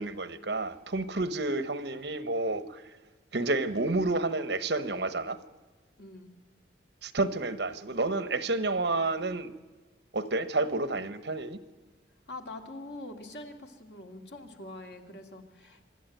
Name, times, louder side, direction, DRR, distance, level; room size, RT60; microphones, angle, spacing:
voice 1, 0.0-2.8 3.3-5.4 7.0-9.5 10.1-11.6, right 2 dB, 70° right, 1.1 m, -30 dB
voice 2, 6.0-6.3 12.3-15.8, left 2 dB, 70° left, 2.3 m, -44 dB
25.5 x 12.0 x 9.1 m
head